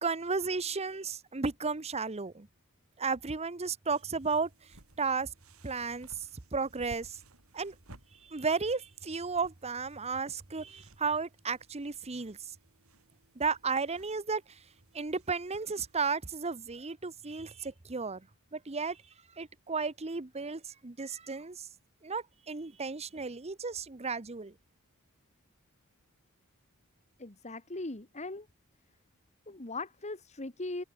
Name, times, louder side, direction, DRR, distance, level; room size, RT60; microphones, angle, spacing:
voice 1, 0.0-2.5 3.0-4.5 5.0-5.3 5.6-6.1 6.5-7.2 7.5-7.7 8.3-12.4 13.4-14.4 14.9-18.2 18.5-19.0 19.4-21.7 22.0-24.5, right 4 dB, 30° right, 0.9 m, -33 dB
sound 1, 3.9-16.2, right 1 dB, 70° right, 4.5 m, -59 dB
voice 2, 27.2-28.5 29.5-30.8, left 2 dB, 30° left, 1.9 m, -39 dB
head